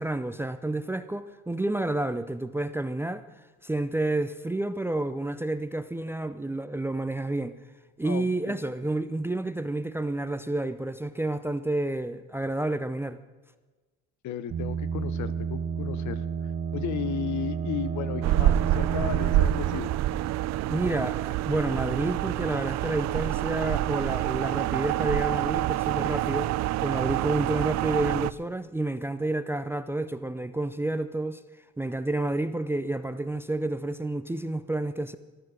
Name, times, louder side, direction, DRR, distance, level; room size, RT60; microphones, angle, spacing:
voice 1, 0.0-3.3 3.6-7.6 8.0-13.2 20.7-26.5 26.8-31.4 31.8-35.2, right 2 dB, 5° right, 0.5 m, -30 dB
voice 2, 8.0-8.6 14.2-19.9, left 9 dB, 65° left, 1.0 m, -35 dB
sound 1, 14.5-21.1, right 6 dB, 45° right, 1.4 m, -32 dB
sound 2, 18.2-28.3, right 14 dB, 60° right, 0.5 m, -27 dB
13.5 x 13.5 x 6.4 m
cardioid pair, 120°, 32 cm